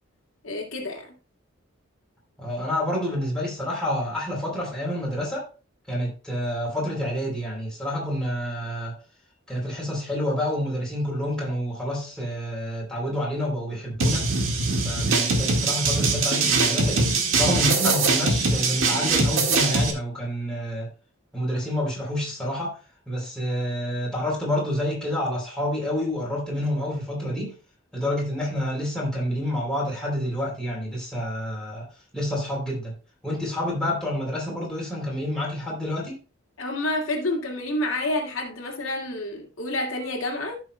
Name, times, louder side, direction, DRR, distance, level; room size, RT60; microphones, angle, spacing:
voice 1, 0.4-1.1 36.6-40.6, left 1 dB, 80° left, 2.2 m, -29 dB
voice 2, 2.4-5.5 5.9-8.9 9.5-14.3 14.8-20.9 21.3-22.8 23.1-27.5 27.9-31.8 32.1-32.9 33.2-36.2, left 1 dB, 5° left, 3.3 m, -28 dB
sound 1, 14.0-19.9, right 3 dB, 75° right, 1.7 m, -22 dB
15.5 x 6.1 x 2.2 m
head